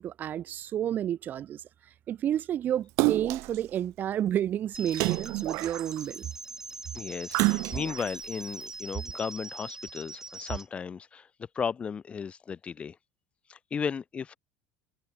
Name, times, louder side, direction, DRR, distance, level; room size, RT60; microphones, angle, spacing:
voice 1, 0.0-1.6 2.1-6.3, right 10 dB, 30° right, 2.1 m, -30 dB
Splash splatter, 3.0-3.6 4.9-6.2 7.3-8.1 8.7-8.8, right 25 dB, 55° right, 1.4 m, -28 dB
sound 1, 4.7-10.7, right 3 dB, 10° right, 4.7 m, -43 dB
voice 2, 6.9-11.3 11.5-13.0 13.5-14.4, left 6 dB, 20° left, 1.5 m, -35 dB
cardioid pair, 155°, 6 cm